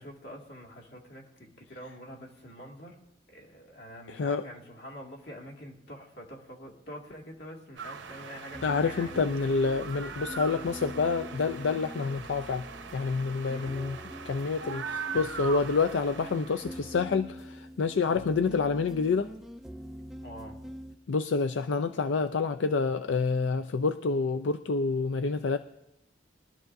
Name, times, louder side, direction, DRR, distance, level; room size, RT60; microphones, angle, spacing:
voice 1, 0.0-3.0 3.3-9.2 13.5-13.8 20.2-20.6, equal, 65° left, 0 dB, 2.3 m, -46 dB
voice 2, 4.1-4.4 8.6-12.7 12.9-14.0 14.3-19.3 21.1-25.6, left 4 dB, 90° left, 9 dB, 0.5 m, -28 dB
sound 1, 7.8-16.9, right 5 dB, 85° right, 0.8 m, -41 dB
sound 2, 8.5-21.0, equal, ahead, 0.5 m, -45 dB
22.5 x 12.5 x 2.6 m, 0.84 s
head